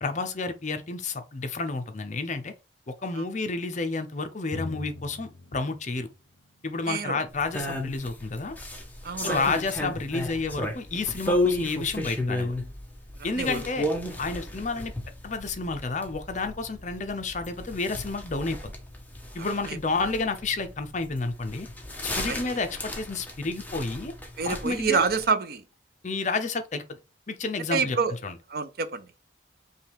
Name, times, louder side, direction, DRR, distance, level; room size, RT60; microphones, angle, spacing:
voice 1, 0.0-2.5 2.9-6.1 6.6-8.6 9.2-12.5 13.2-13.9 14.2-14.9 15.2-18.7 19.3-21.7 22.2-24.1 24.4-25.0 26.0-26.8 27.3-28.0 28.2-28.4, left 3 dB, 40° left, 0.6 m, -30 dB
Drum, 4.5-8.0, left 2 dB, 70° left, 0.8 m, -42 dB
voice 2, 6.9-7.2 9.0-9.4 13.3-13.6 19.4-19.8 22.3-22.6 24.4-25.6 27.7-28.2 28.5-29.1, right 5 dB, 55° right, 0.5 m, -28 dB
sound 1, 7.3-25.3, left 1 dB, 10° left, 0.8 m, -34 dB
5.5 x 2.4 x 3.5 m
head